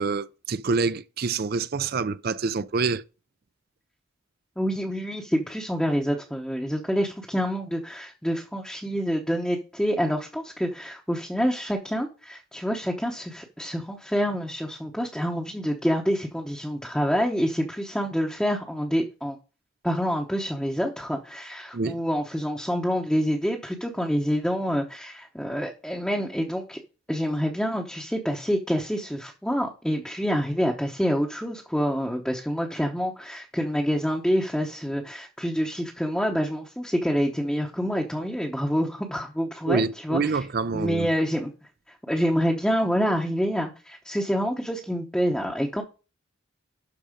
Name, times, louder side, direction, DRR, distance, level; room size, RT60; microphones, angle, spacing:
voice 1, 0.0-3.0 21.7-22.0 39.7-41.1, right 4 dB, 45° right, 0.5 m, -26 dB
voice 2, 4.6-19.4 19.8-26.8 27.1-40.2 40.7-41.5 42.1-45.8, equal, 5° left, 0.8 m, -27 dB
12.0 x 4.2 x 5.1 m
head